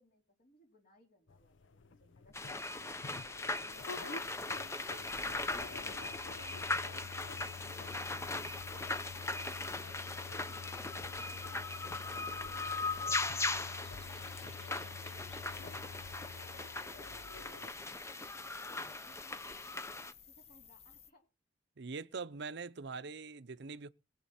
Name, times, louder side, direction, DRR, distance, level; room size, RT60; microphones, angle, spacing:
voice 1, 0.0-3.3 3.6-12.7 13.0-15.8 16.2-21.3, left 2 dB, 50° left, 3.9 m, -65 dB
sound 1, 1.3-17.7, left 5 dB, 70° left, 0.7 m, -49 dB
sound 2, 2.3-20.1, left 3 dB, 15° left, 0.6 m, -39 dB
Birdsong & Crickets in a Park, 3.7-21.1, left 7 dB, 35° left, 0.9 m, -58 dB
voice 2, 21.8-23.9, right 4 dB, 60° right, 0.7 m, -43 dB
21.5 x 8.1 x 4.3 m
head